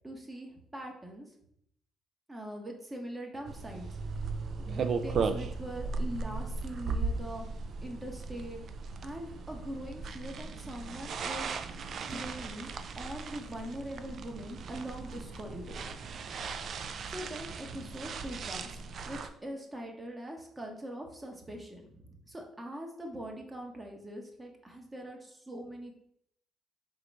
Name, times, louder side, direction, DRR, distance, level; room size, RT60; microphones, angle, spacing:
voice 1, 0.0-1.3 2.3-3.9 4.6-7.5 7.8-8.7 9.0-11.5 12.1-15.9 17.1-25.9, right 1 dB, 20° right, 2 dB, 1.1 m, -42 dB
sound 1, 3.4-19.3, right 4 dB, 55° right, 0.4 m, -37 dB
3.8 x 3.1 x 4.6 m, 0.72 s
cardioid pair, 80°, 0 cm